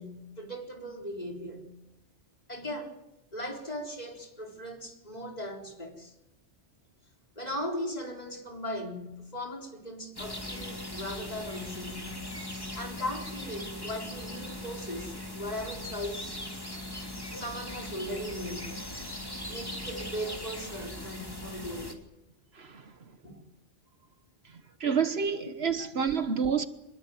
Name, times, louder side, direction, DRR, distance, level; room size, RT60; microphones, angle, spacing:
voice 1, 0.0-1.7 2.5-3.0 3.3-6.1 7.4-12.2 12.7-16.4 17.3-18.8 19.5-21.9 23.2-23.4 25.4-25.5 25.8-25.9, equal, 35° left, 4.2 m, -38 dB
sound 1, 10.2-21.9, left 1 dB, 20° left, 3.0 m, -39 dB
voice 2, 24.8-26.7, right 6 dB, 60° right, 1.4 m, -28 dB
24.5 x 21.5 x 7.9 m
omnidirectional pair, 1.2 m